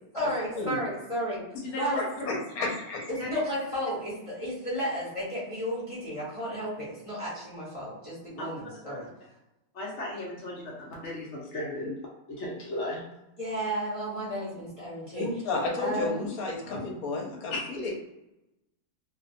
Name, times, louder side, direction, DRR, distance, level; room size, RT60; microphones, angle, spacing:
voice 1, 0.1-1.4 1.7-2.3 3.1-9.1 13.4-15.3 15.8-16.3, equal, 25° left, -8 dB, 0.9 m, -33 dB
voice 2, 2.0-3.1 15.1-17.9, left 3 dB, 80° left, 0 dB, 1.1 m, -32 dB
voice 3, 9.7-12.0 12.3-13.0 17.5-17.6, left 2 dB, 60° left, -5 dB, 0.9 m, -35 dB
2.5 x 2.2 x 2.5 m, 0.91 s
omnidirectional pair, 1.5 m